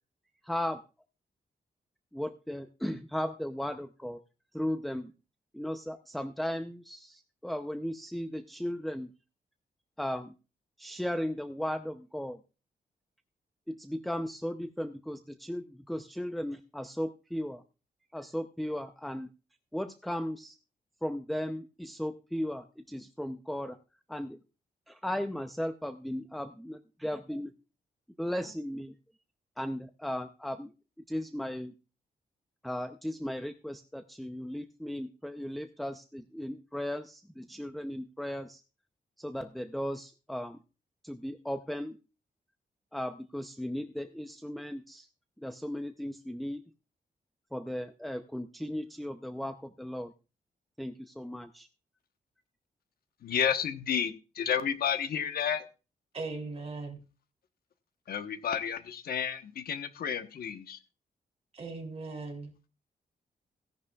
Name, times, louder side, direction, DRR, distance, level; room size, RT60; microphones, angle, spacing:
voice 1, 0.4-0.8 2.1-4.2 4.5-5.1 5.5-9.1 10.0-10.3 10.8-12.4 13.7-17.6 18.1-19.3 19.7-20.6 21.0-23.8 24.1-24.4 24.9-27.5 28.2-28.9 29.6-30.7 31.1-31.7 32.6-38.6 39.2-40.6 41.0-42.0 42.9-45.1 45.4-46.6 47.5-50.1 50.8-51.7, equal, ahead, 8 dB, 0.6 m, -36 dB
voice 2, 53.2-55.7 58.1-60.8, left 8 dB, 80° left, 9 dB, 1.1 m, -31 dB
voice 3, 56.1-57.0 61.5-62.5, right 3 dB, 40° right, 3 dB, 3.0 m, -38 dB
16.5 x 10.5 x 2.4 m, 0.32 s
wide cardioid pair, 130°, 15 cm